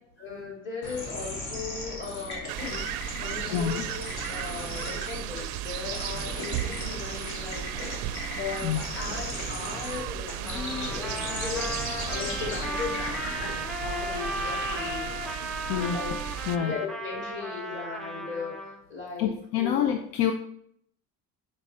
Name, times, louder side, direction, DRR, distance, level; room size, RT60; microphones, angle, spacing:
voice 1, 0.2-16.1 16.5-19.8, left 4 dB, 35° left, -1 dB, 2.1 m, -38 dB
sound 1, 0.8-15.4, left 1 dB, 55° left, 1.8 m, -37 dB
sound 2, 2.5-16.6, right 12 dB, 90° right, 0.5 m, -35 dB
voice 2, 3.5-3.8 8.6-8.8 15.7-16.0 16.5-16.7 19.2-20.3, left 9 dB, 85° left, 6 dB, 0.6 m, -27 dB
Trumpet, 10.5-18.8, equal, ahead, 0.4 m, -36 dB
5.3 x 4.6 x 4.2 m, 0.67 s
cardioid pair, 150°, 35 cm